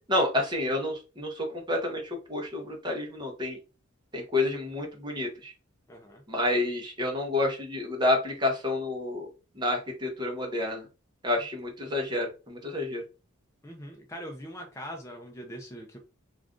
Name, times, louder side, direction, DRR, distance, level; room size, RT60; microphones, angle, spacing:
voice 1, 0.1-3.6 4.1-5.5 6.3-9.3 9.6-10.9 11.2-13.0, left 2 dB, 20° right, 1 dB, 0.8 m, -29 dB
voice 2, 5.9-6.2 13.6-16.0, equal, 15° left, 1 dB, 0.5 m, -42 dB
2.4 x 2.4 x 3.6 m, 0.31 s
head